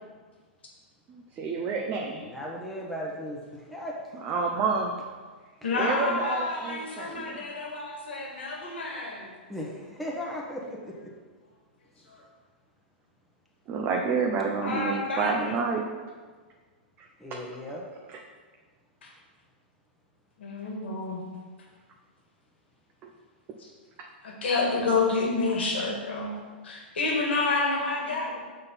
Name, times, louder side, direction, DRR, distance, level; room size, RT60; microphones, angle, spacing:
voice 1, 1.4-2.3 4.2-5.0 5.8-7.4 13.7-15.9 17.0-17.4 23.0-23.1, right 4 dB, 30° right, 0 dB, 0.7 m, -29 dB
voice 2, 2.2-4.0 9.5-11.0 17.2-17.9, equal, ahead, -4 dB, 1.2 m, -36 dB
voice 3, 5.6-9.3 12.1-12.2 14.6-15.6 19.0-19.1 20.4-21.2 23.6-23.7 24.2-26.3 26.6-28.4, left 3 dB, 80° left, -1 dB, 1.9 m, -29 dB
6.4 x 4.0 x 5.6 m, 1.4 s
hypercardioid pair, 120°, 6 cm